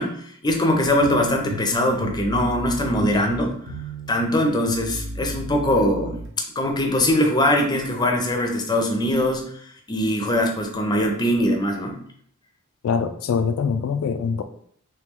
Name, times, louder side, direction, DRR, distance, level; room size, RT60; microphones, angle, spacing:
voice 1, 0.0-3.6 4.1-6.2 6.6-9.5 9.9-12.0, left 1 dB, 20° left, 3 dB, 0.6 m, -22 dB
sound 1, 1.0-6.3, right 1 dB, 60° right, 0.9 m, -34 dB
voice 2, 12.8-14.4, left 6 dB, 70° left, 8 dB, 0.3 m, -23 dB
3.3 x 3.1 x 3.6 m, 0.62 s
head